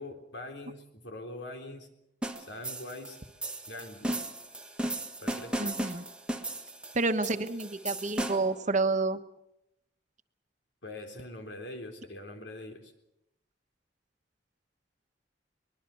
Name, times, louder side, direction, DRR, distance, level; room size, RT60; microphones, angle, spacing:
voice 1, 0.0-1.9 2.4-3.2 3.7-4.1 5.2-5.7 10.8-12.9, left 1 dB, 80° left, 5 dB, 3.7 m, -43 dB
sound 1, 2.2-8.6, right 1 dB, 5° right, 1.5 m, -36 dB
voice 2, 5.6-6.0 6.9-9.2, right 3 dB, 45° right, 9 dB, 1.2 m, -29 dB
24.0 x 21.0 x 7.0 m, 0.82 s
head